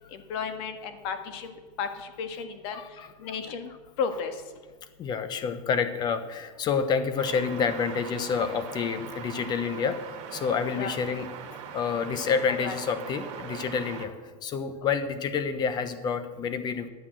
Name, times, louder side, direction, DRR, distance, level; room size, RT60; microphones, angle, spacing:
voice 1, 0.1-2.8 3.2-3.7 4.0-4.4 10.7-10.9 12.6-12.8, left 6 dB, 55° left, 7 dB, 1.6 m, -33 dB
voice 2, 2.7-3.3 5.0-10.0 10.3-11.3 11.7-14.1 14.4-16.9, left 6 dB, 25° left, 11 dB, 0.9 m, -28 dB
sound 1, 7.2-14.1, right 7 dB, 40° right, 1.9 m, -41 dB
11.5 x 8.2 x 7.5 m, 1.3 s
supercardioid pair, 160°, 17 cm